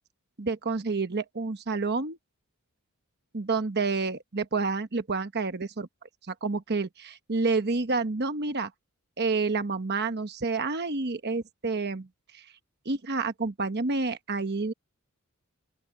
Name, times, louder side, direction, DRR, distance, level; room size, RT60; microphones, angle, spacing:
voice 1, 0.4-2.2 3.3-5.9 6.3-8.7 9.2-12.1 12.3-12.5 12.8-14.7, right 3 dB, 50° right, 1.1 m, -29 dB
open air
head